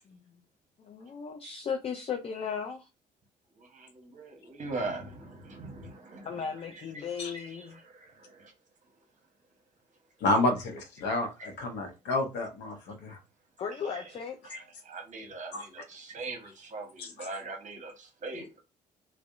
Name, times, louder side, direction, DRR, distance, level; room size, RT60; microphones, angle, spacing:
voice 1, 0.8-2.9 6.2-7.8 13.6-14.3, left 6 dB, 30° left, 0.4 m, -36 dB
voice 2, 3.6-8.5 11.4-11.5 13.8-14.1 14.4-18.6, right 3 dB, 35° right, 0.9 m, -42 dB
voice 3, 10.2-13.2 15.5-15.6 17.0-17.1, left 2 dB, 55° left, 0.7 m, -30 dB
2.5 x 2.1 x 2.4 m
figure-of-eight pair, 45°, 21 cm